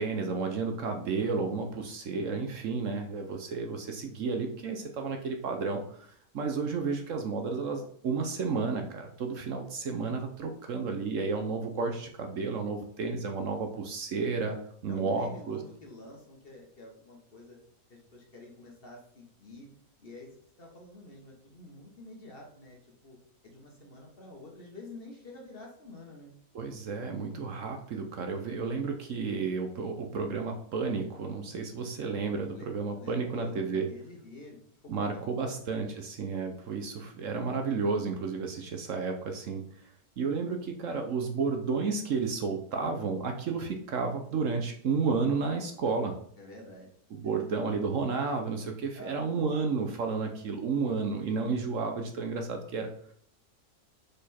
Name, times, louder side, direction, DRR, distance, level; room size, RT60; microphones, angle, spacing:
voice 1, 0.0-14.6 14.8-15.6 26.5-33.9 34.9-39.9 40.2-46.1 47.1-52.9, right 4 dB, 60° right, 4 dB, 1.0 m, -32 dB
voice 2, 14.9-17.6 17.9-19.7 20.0-20.3 20.6-22.8 23.0-23.2 23.4-26.3 32.5-32.7 32.9-35.7 46.4-46.9 47.2-47.5 48.9-49.5, left 2 dB, 40° left, 0 dB, 1.4 m, -48 dB
5.2 x 4.4 x 4.2 m, 0.62 s
omnidirectional pair, 1.6 m